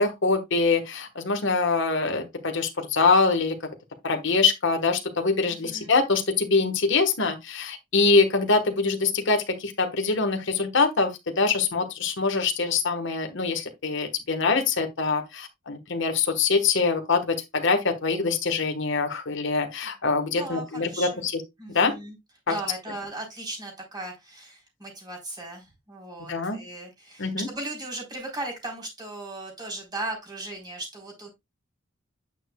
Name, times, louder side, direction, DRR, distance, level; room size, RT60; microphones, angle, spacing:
voice 1, 0.0-3.6 4.0-11.1 11.4-21.1 21.7-21.9 22.5-22.6 26.3-26.6 27.2-27.5, left 4 dB, 65° left, 1.4 m, -24 dB
voice 2, 5.5-5.9 20.3-21.3 21.6-22.2 22.5-31.3, right 2 dB, 20° right, 3.9 m, -37 dB
9.0 x 6.6 x 2.3 m
head